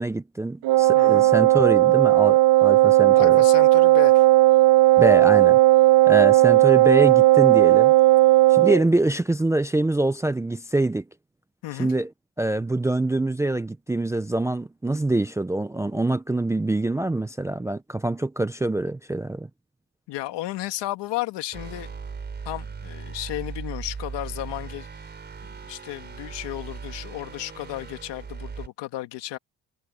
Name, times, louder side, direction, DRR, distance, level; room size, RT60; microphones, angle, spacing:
voice 1, 0.0-3.4 5.0-5.6 6.1-7.9 8.5-11.0 11.8-12.1 12.4-19.5, right 2 dB, 5° right, 0.4 m, -25 dB
Wind instrument woodwind instrument, 0.6-8.8, right 17 dB, 65° right, 0.8 m, -16 dB
voice 2, 0.9-1.3 3.1-4.2 11.6-11.9 20.1-21.9 22.5-25.0 25.6-29.4, left 16 dB, 75° left, 2.0 m, -33 dB
sound 1, 21.5-28.7, right 5 dB, 25° right, 4.4 m, -38 dB
cardioid pair, 155°, 42 cm